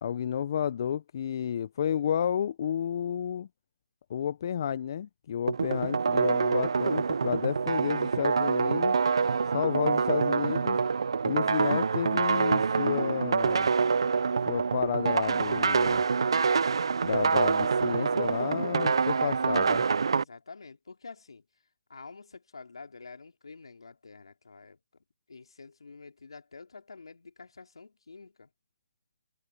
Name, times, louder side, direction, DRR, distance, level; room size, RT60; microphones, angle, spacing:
voice 1, 0.0-3.5 4.1-8.9 9.5-10.8 11.2-13.7 14.5-16.0 17.0-19.8, left 9 dB, 45° left, 0.9 m, -31 dB
sound 1, 5.5-20.2, right 5 dB, 65° right, 0.8 m, -26 dB
voice 2, 17.8-18.7 19.0-19.7 20.1-21.4 21.9-28.5, left 4 dB, 75° left, 3.1 m, -48 dB
figure-of-eight pair, 145°, 3 cm